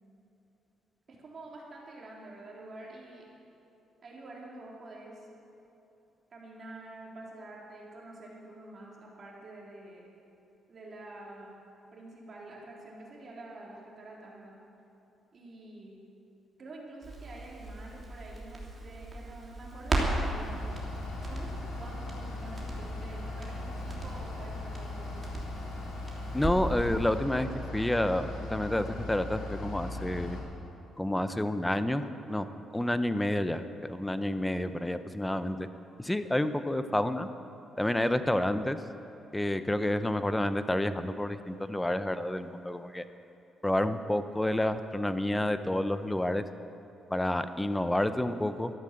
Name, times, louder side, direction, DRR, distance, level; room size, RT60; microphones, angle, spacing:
voice 1, 1.1-3.3 4.0-5.3 6.3-10.1 10.7-11.6 11.9-14.6 15.3-16.0 16.6-20.7 21.2-25.2, right 2 dB, 45° right, -3 dB, 3.9 m, -47 dB
Crackle, 17.0-26.8 27.1-27.2, right 2 dB, 25° right, 3.2 m, -37 dB
Bus / Idling, 20.4-30.4, left 2 dB, 85° left, 3.4 m, -38 dB
voice 2, 26.3-30.4 31.0-32.5 32.7-35.7 36.0-37.3 37.8-38.8 39.3-43.0 43.6-46.4 47.1-48.7, left 1 dB, 10° left, 10 dB, 0.8 m, -29 dB
13.5 x 11.5 x 7.7 m, 3.0 s
cardioid pair, 90°, 0 cm